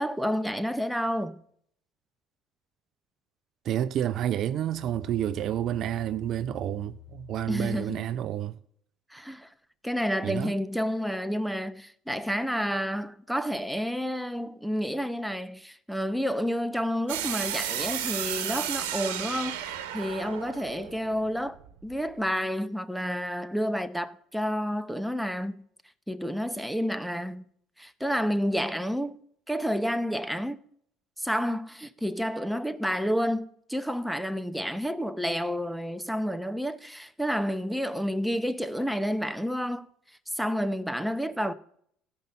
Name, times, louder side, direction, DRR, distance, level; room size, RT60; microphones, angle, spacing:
voice 1, 0.0-1.4 7.5-8.0 9.1-9.5 9.8-21.6 21.8-25.6 26.1-27.5 27.8-29.2 29.5-30.6 31.2-39.9 40.3-41.5, equal, ahead, 0.8 m, -30 dB
voice 2, 3.6-8.6 10.2-10.5, right 11 dB, 55° right, 0.5 m, -29 dB
Musical instrument, 4.5-8.0, left 17 dB, 75° left, 2.9 m, -49 dB
sound 1, 17.1-21.9, right 10 dB, 80° right, 1.5 m, -33 dB
15.0 x 5.3 x 5.4 m
hypercardioid pair, 70°, 0 cm